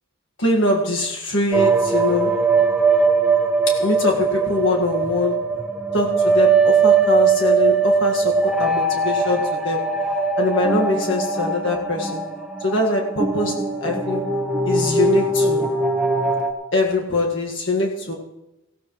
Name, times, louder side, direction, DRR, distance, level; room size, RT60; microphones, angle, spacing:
voice 1, 0.4-2.4 3.7-5.4 5.9-9.9 10.4-12.3 12.6-14.2 14.6-15.7 16.7-18.1, left 2 dB, 65° left, -1 dB, 1.7 m, -23 dB
sound 1, 1.5-16.5, right 4 dB, 5° right, 1.2 m, -20 dB
19.0 x 16.0 x 3.1 m, 0.94 s
head